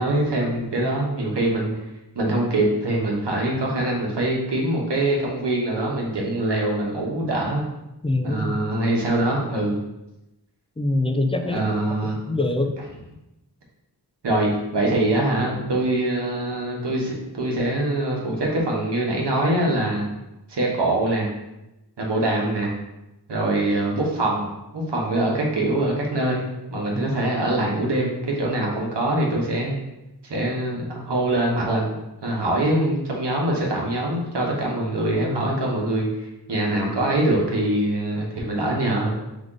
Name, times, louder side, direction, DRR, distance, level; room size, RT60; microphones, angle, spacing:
voice 1, 0.0-1.7 2.1-7.6 8.2-9.8 11.4-12.2 14.2-20.1 20.5-21.3 22.0-22.7 23.3-24.5 24.7-26.4 26.7-29.8 30.2-31.9 32.2-36.1 36.5-39.1, right 1 dB, 80° right, -2 dB, 1.1 m, -23 dB
voice 2, 8.0-8.6 10.8-11.6 12.0-12.7 26.9-27.0, left 2 dB, 15° left, 5 dB, 0.4 m, -24 dB
3.8 x 3.4 x 3.7 m, 0.94 s
wide cardioid pair, 70°, 41 cm